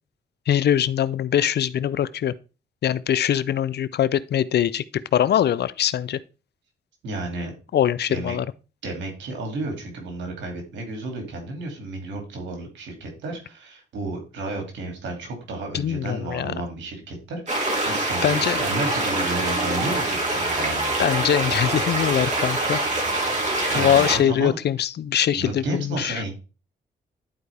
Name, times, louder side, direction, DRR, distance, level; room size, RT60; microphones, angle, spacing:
voice 1, 0.5-2.3 2.8-6.2 7.7-8.5 15.7-16.5 18.2-18.6 21.0-22.8 23.8-26.2, left 10 dB, 65° left, 0.5 m, -22 dB
voice 2, 7.0-7.5 8.1-8.4 8.8-20.9 23.7-24.6 25.3-26.3, right 2 dB, 90° right, 2.5 m, -32 dB
sound 1, 17.5-24.2, right 2 dB, 40° right, 3.1 m, -24 dB
11.0 x 4.5 x 3.4 m
cardioid pair, 65°, 18 cm